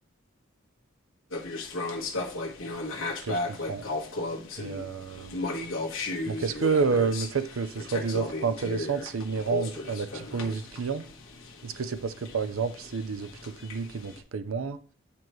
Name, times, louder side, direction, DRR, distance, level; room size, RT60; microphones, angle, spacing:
sound 1, 1.3-14.2, left 2 dB, 80° left, 1.4 m, -35 dB
voice 1, 3.2-3.8 4.6-5.4 6.3-11.0 11.6-14.8, right 5 dB, 85° right, 0.5 m, -30 dB
9.4 x 4.5 x 3.1 m
head